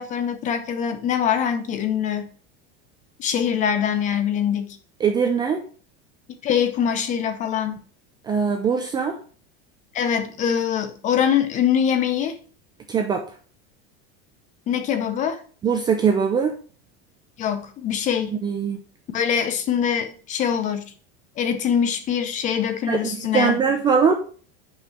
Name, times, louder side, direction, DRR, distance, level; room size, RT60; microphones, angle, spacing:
voice 1, 0.0-2.3 3.2-4.8 6.4-7.8 9.9-12.4 14.7-15.4 17.4-18.3 19.1-20.9 21.4-23.6, left 8 dB, 25° left, 0.8 m, -23 dB
voice 2, 5.0-5.6 8.2-9.2 12.9-13.3 15.6-16.5 18.3-18.8 22.9-24.1, right 6 dB, 15° right, 0.4 m, -21 dB
5.5 x 5.4 x 6.3 m
supercardioid pair, 170°, 31 cm